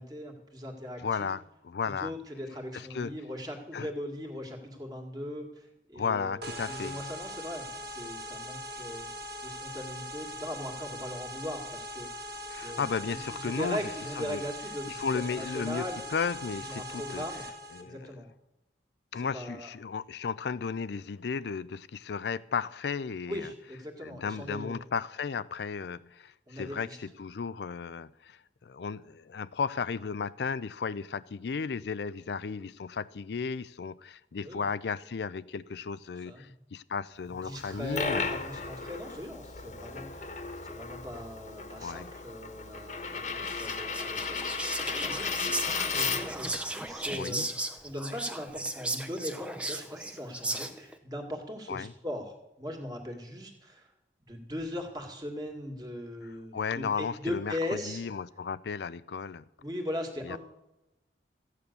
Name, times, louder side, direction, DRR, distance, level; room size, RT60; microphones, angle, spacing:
voice 1, 0.0-1.3 1.9-9.1 9.4-16.0 16.6-17.5 17.8-18.3 19.2-19.7 23.3-24.8 26.5-27.0 34.4-34.7 36.2-36.5 37.3-47.6 47.8-53.9 54.3-58.0 59.6-60.4, left 1 dB, 20° right, 2.2 m, -39 dB
voice 2, 1.0-2.1 2.7-3.1 3.7-3.9 5.9-7.0 12.5-13.8 14.2-14.4 14.9-15.8 16.1-17.2 17.7-18.1 19.1-23.5 24.0-38.2 41.8-42.1 47.1-47.5 51.7-51.9 56.5-59.4 60.2-60.4, left 5 dB, 70° left, 0.4 m, -34 dB
sound 1, 6.4-17.8, equal, 65° right, 1.9 m, -41 dB
Coin (dropping), 37.6-46.5, left 5 dB, 40° left, 1.3 m, -35 dB
Whispering, 43.5-50.9, right 2 dB, 5° right, 0.8 m, -36 dB
14.5 x 9.5 x 6.8 m
head